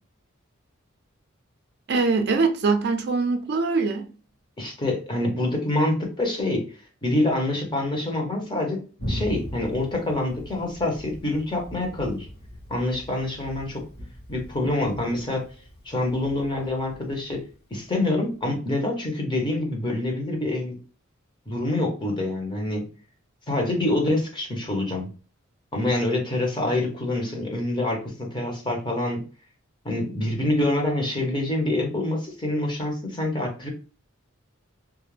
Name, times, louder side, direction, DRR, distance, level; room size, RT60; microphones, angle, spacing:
voice 1, 1.9-4.1, right 4 dB, 50° right, 0.4 m, -23 dB
voice 2, 4.6-6.6 7.0-8.8 9.1-12.3 12.7-13.8 14.3-15.4 15.8-20.8 21.5-22.9 23.5-25.1 25.7-29.2 29.8-33.7, left 1 dB, 20° left, 0.7 m, -26 dB
Thunder, 9.0-18.4, equal, 50° left, 1.0 m, -39 dB
2.3 x 2.1 x 3.1 m
head